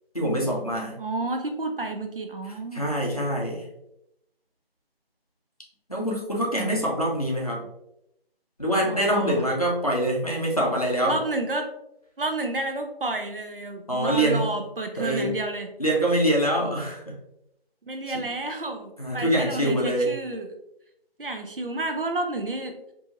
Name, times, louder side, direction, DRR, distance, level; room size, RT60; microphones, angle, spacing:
voice 1, 0.1-1.0 2.7-3.6 5.9-7.6 8.6-11.2 13.9-14.5 15.0-15.3 15.8-17.2 18.1-18.2 19.0-20.1, right 1 dB, 35° left, -3 dB, 0.6 m, -24 dB
voice 2, 1.0-3.0 8.8-9.5 11.1-11.7 12.2-15.7 17.8-20.5 21.2-22.8, right 2 dB, 60° right, 5 dB, 0.5 m, -30 dB
2.7 x 2.7 x 2.4 m, 0.80 s
figure-of-eight pair, 180°, 31 cm